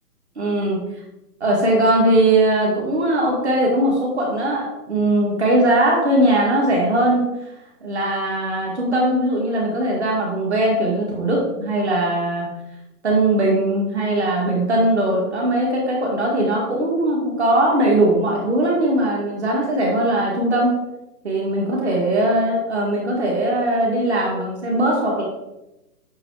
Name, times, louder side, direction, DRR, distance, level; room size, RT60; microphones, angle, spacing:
voice 1, 0.4-0.8 1.4-7.5 7.8-12.5 13.0-20.7 21.2-25.2, right 1 dB, 45° right, -2 dB, 1.8 m, -20 dB
7.6 x 5.7 x 4.7 m, 0.95 s
hypercardioid pair, 175°, 48 cm